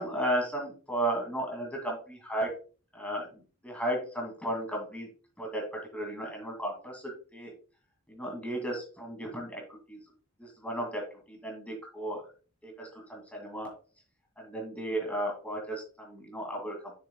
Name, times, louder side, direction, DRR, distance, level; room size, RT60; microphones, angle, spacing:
voice 1, 0.0-2.5 2.9-5.1 5.4-7.5 8.1-10.0 10.4-12.2 12.6-13.7 14.4-16.9, right 1 dB, 5° left, 1 dB, 2.2 m, -34 dB
7.0 x 6.7 x 2.2 m, 0.37 s
head